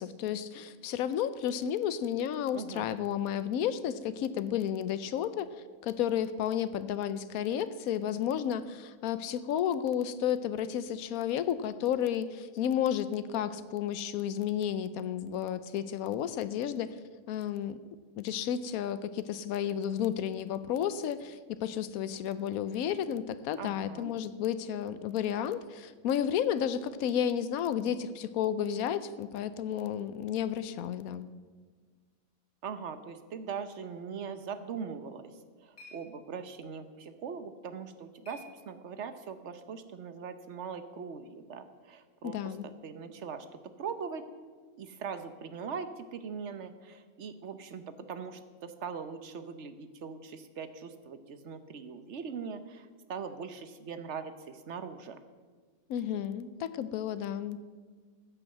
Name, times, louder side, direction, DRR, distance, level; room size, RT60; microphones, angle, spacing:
voice 1, 0.0-5.5 5.8-16.9 17.3-17.8 18.2-31.3 42.2-42.7 55.9-57.6, left 9 dB, 90° left, 14 dB, 1.1 m, -32 dB
voice 2, 2.5-2.9 23.6-24.1 32.6-35.3 35.6-43.5 43.8-44.3 44.8-55.2, right 6 dB, 60° right, 10 dB, 1.1 m, -41 dB
sound 1, 35.0-39.2, left 1 dB, 55° left, 5.0 m, -58 dB
14.5 x 6.2 x 7.8 m, 1.5 s
omnidirectional pair, 1.5 m